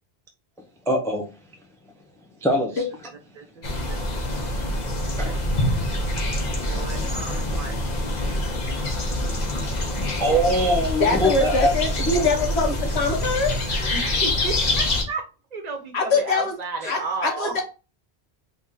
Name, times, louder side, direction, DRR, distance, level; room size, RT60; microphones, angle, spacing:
voice 1, 0.9-1.3 2.4-2.8 5.2-5.4 10.2-11.7 12.1-12.2, equal, 5° left, 0.4 m, -22 dB
voice 2, 3.3-5.9 6.5-9.2 13.6-17.6, right 4 dB, 45° right, 0.9 m, -35 dB
sound 1, 3.6-15.0, left 1 dB, 45° left, 0.9 m, -25 dB
voice 3, 11.0-13.5 15.9-16.5 16.9-17.6, left 3 dB, 80° left, 1.2 m, -23 dB
3.0 x 2.7 x 3.7 m
omnidirectional pair, 1.1 m